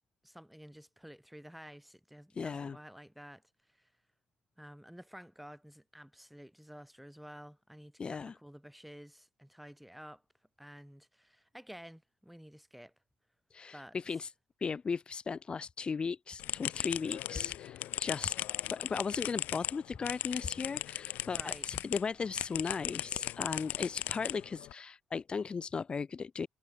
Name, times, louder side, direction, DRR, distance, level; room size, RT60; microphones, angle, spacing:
voice 1, 0.2-3.9 4.6-10.2 10.6-12.9 13.7-14.0 21.3-21.7, equal, ahead, 7.2 m, -52 dB
voice 2, 2.4-2.8 8.0-8.3 13.5-14.3 14.6-18.4 18.7-26.5, left 5 dB, 35° left, 2.0 m, -37 dB
sound 1, 16.4-22.0 22.4-24.7, left 14 dB, 75° left, 2.7 m, -37 dB
cardioid pair, 90°, 3 cm